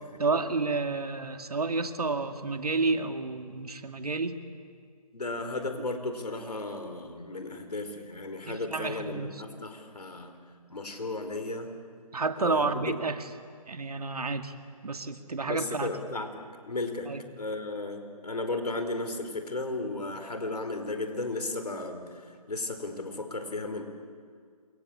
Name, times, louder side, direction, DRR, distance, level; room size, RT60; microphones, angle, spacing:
voice 1, 0.2-4.4 8.4-9.3 12.1-13.2 13.7-14.5 14.8-15.9 17.1-17.2, right 3 dB, 75° right, 7 dB, 2.2 m, -30 dB
voice 2, 5.1-10.3 10.7-11.7 12.4-12.9 15.5-17.1 17.4-23.8, left 2 dB, 80° left, 6 dB, 4.7 m, -35 dB
28.5 x 24.0 x 8.8 m, 2.1 s
figure-of-eight pair, 150°, 20 cm